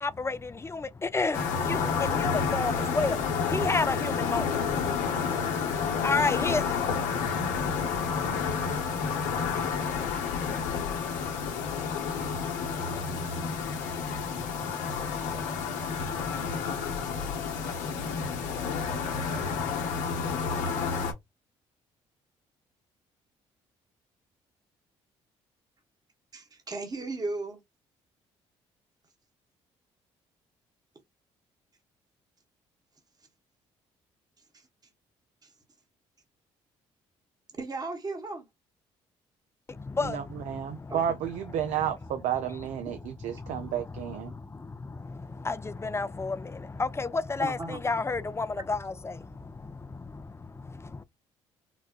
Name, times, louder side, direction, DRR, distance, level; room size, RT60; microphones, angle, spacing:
voice 1, 0.0-6.8 39.7-40.9 41.6-41.8 42.5-42.6 43.3-51.0, left 3 dB, 20° left, 0.5 m, -32 dB
sound 1, 1.3-21.1, left 5 dB, 75° left, 0.9 m, -30 dB
voice 2, 26.3-27.6 34.5-34.7 35.4-35.5 37.6-38.5 40.9-41.2 47.4-47.8 48.6-48.7, right 3 dB, 30° right, 1.1 m, -36 dB
voice 3, 40.0-44.3, right 10 dB, 70° right, 0.6 m, -32 dB
4.0 x 2.2 x 2.3 m
hypercardioid pair, 55°, 13 cm